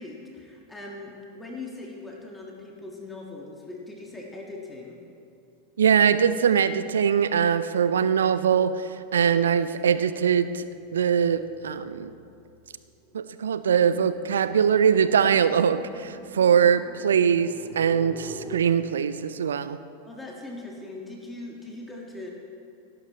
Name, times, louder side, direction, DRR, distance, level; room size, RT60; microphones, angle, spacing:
voice 1, 0.0-5.0 20.1-22.3, left 2 dB, 10° left, -2 dB, 1.7 m, -40 dB
voice 2, 5.8-10.6 10.9-12.1 13.1-19.8, right 7 dB, 65° right, 13 dB, 0.5 m, -22 dB
sound 1, 10.5-18.6, right 2 dB, 15° right, 1.2 m, -46 dB
18.0 x 11.0 x 3.1 m, 2.6 s
figure-of-eight pair, 85°, 0 cm